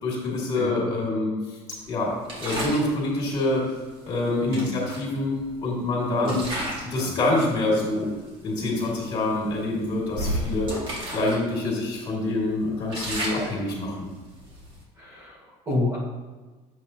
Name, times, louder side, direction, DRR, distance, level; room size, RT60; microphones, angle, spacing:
voice 1, 0.0-1.3 1.9-3.6 4.0-5.3 5.6-6.5 6.9-8.1 8.4-10.7 11.1-14.1, left 2 dB, 35° left, -5 dB, 2.2 m, -26 dB
voice 2, 0.6-0.9 4.5-4.8 6.2-6.4 7.0-7.1 15.0-16.0, left 2 dB, 25° right, -5 dB, 1.7 m, -29 dB
sound 1, 2.2-2.9 4.1-4.2 4.5-5.7 6.2-7.0 7.3-7.6 8.3-8.4 8.7-8.9 9.5-11.4 11.7-11.8 12.3-14.8, right 1 dB, 45° right, 2.0 m, -32 dB
8.1 x 7.0 x 2.9 m, 1.3 s
cardioid pair, 145°, 12 cm